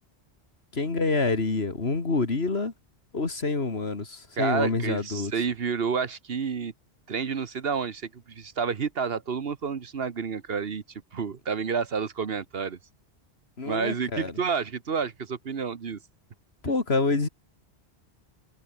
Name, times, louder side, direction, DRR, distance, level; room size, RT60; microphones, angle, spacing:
voice 1, 0.7-2.7 3.1-5.3 13.6-14.4 16.6-17.3, left 3 dB, 65° left, 2.8 m, -27 dB
voice 2, 4.4-6.7 7.1-10.8 11.1-12.8 13.7-16.0, right 6 dB, 60° right, 1.3 m, -29 dB
omnidirectional pair, 1.1 m